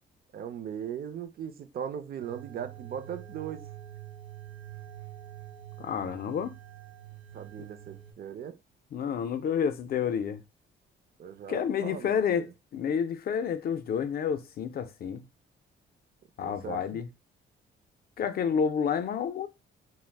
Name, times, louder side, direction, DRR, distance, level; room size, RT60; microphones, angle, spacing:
voice 1, 0.3-3.7 7.3-8.6 11.2-12.5 16.4-17.0, right 8 dB, 50° right, 0.4 m, -39 dB
sound 1, 2.2-8.1, right 12 dB, 70° right, 1.0 m, -46 dB
voice 2, 5.8-6.5 8.9-10.4 11.5-12.5 12.7-15.2 16.4-17.1 18.2-19.5, left 7 dB, 50° left, 0.4 m, -29 dB
2.3 x 2.0 x 3.3 m
cardioid pair, 90°, 20 cm